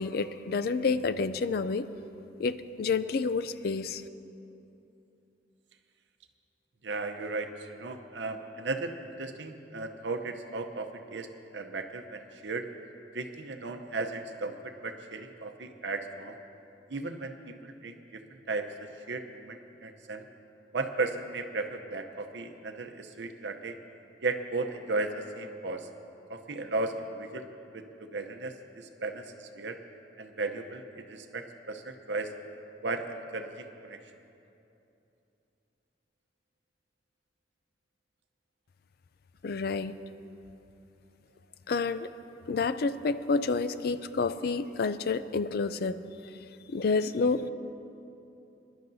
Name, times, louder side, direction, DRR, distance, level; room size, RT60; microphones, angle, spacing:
voice 1, 0.0-1.9 2.4-4.0 39.4-40.0 41.7-42.1 42.5-46.3 46.7-47.5, left 4 dB, 55° left, 13 dB, 0.4 m, -29 dB
voice 2, 6.8-11.3 11.5-12.7 13.1-16.4 16.9-18.2 18.5-20.2 20.7-23.8 24.2-25.9 26.3-27.5 27.7-29.8 30.2-32.3 32.8-34.0, right 3 dB, 75° right, 6 dB, 0.8 m, -35 dB
22.5 x 11.5 x 2.7 m, 2.8 s
head